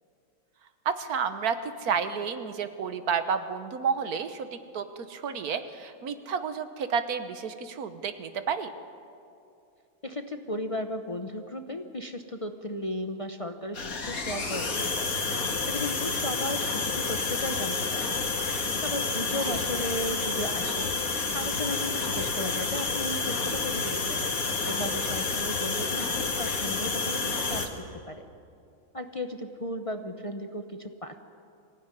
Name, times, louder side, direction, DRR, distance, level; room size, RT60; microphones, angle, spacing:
voice 1, 0.8-8.7 19.3-19.6, right 6 dB, 80° right, 10 dB, 1.6 m, -31 dB
voice 2, 10.0-15.2 15.7-18.3 18.8-20.9 21.3-24.4 24.6-28.2 28.9-31.2, left 1 dB, 30° left, 6 dB, 0.8 m, -35 dB
sound 1, 13.7-27.7, left 4 dB, 70° left, 2.3 m, -29 dB
24.5 x 15.5 x 9.8 m, 2.6 s
omnidirectional pair, 1.6 m